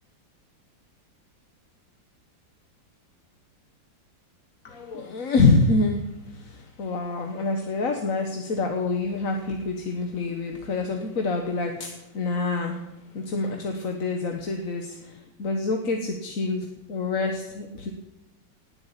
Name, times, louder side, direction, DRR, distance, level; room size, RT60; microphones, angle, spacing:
voice 1, 4.6-12.8 13.1-17.9, left 3 dB, 50° left, 3 dB, 1.6 m, -26 dB
19.0 x 8.5 x 8.3 m, 0.93 s
omnidirectional pair, 2.0 m